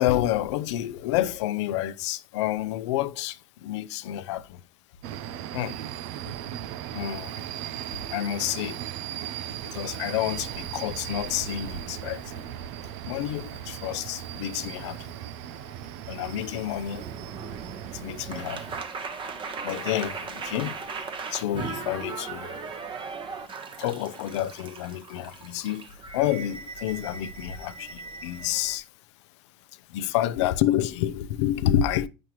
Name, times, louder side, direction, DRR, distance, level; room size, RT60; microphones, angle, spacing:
voice 1, 0.0-4.6 5.5-5.8 6.9-7.4 7.9-8.8 9.6-12.4 13.0-15.1 15.6-15.7 16.1-17.0 17.9-18.8 19.6-20.8 21.2-22.6 23.8-28.9 29.9-32.1, left 12 dB, 80° left, 0.6 m, -29 dB
sound 1, 5.0-18.8, right 11 dB, 70° right, 0.6 m, -37 dB
sound 2, 16.9-28.8, right 5 dB, 35° right, 1.3 m, -38 dB
8.9 x 6.1 x 3.1 m
supercardioid pair, 105°, 15 cm